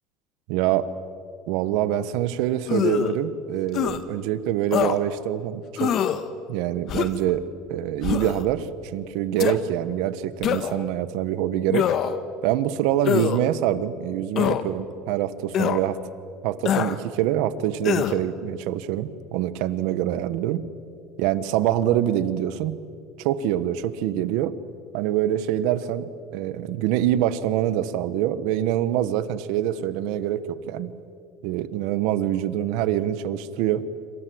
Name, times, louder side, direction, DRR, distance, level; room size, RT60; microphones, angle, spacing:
voice 1, 0.5-0.8 1.5-5.9 6.5-8.7 8.9-11.9 12.4-16.0 16.4-20.7 21.2-22.8 23.2-24.5 24.9-30.9 31.4-33.9, right 12 dB, 70° right, 14 dB, 1.4 m, -25 dB
sound 1, 2.7-3.1 3.7-4.0 4.7-5.0 5.8-6.2 6.9-7.3 8.0-8.4 9.4-9.6 10.4-10.8 11.7-12.2 13.0-13.4 14.4-14.6 15.5-15.8 16.7-17.0 17.8-18.2, left 9 dB, 45° left, 1.6 m, -24 dB
27.0 x 26.5 x 8.0 m, 2.5 s
cardioid pair, 135°, 0 cm